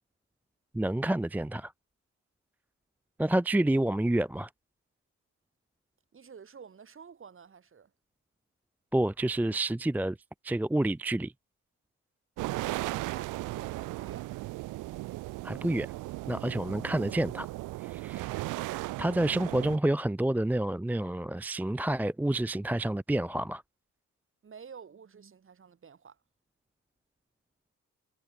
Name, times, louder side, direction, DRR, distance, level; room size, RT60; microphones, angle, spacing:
voice 1, 0.7-1.7 3.2-4.5 8.9-10.2 10.4-11.3 15.4-15.9 16.3-17.5 17.8-23.6, right 1 dB, 5° right, 0.6 m, -29 dB
voice 2, 6.1-7.9 12.5-14.3 24.4-26.2, right 6 dB, 40° right, 6.7 m, -50 dB
sound 1, 12.4-19.8, right 19 dB, 85° right, 0.6 m, -36 dB
cardioid pair, 90°, 31 cm